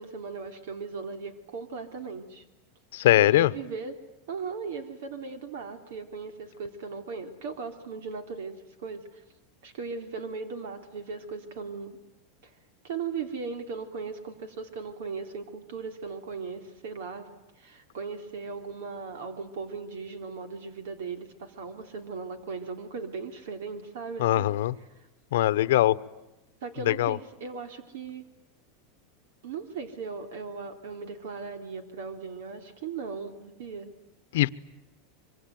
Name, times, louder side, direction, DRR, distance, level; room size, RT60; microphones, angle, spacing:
voice 1, 0.0-2.4 3.2-4.0 4.3-9.2 9.6-12.0 12.4-12.5 12.8-17.3 17.6-24.5 24.8-24.9 26.6-28.3 29.4-33.9, right 5 dB, 75° right, 8 dB, 3.3 m, -38 dB
voice 2, 2.9-3.5 24.2-24.7 25.3-26.0 26.9-27.2 34.3-34.5, left 14 dB, 80° left, 16 dB, 1.0 m, -21 dB
25.0 x 25.0 x 9.2 m, 0.95 s
supercardioid pair, 165°, 0 cm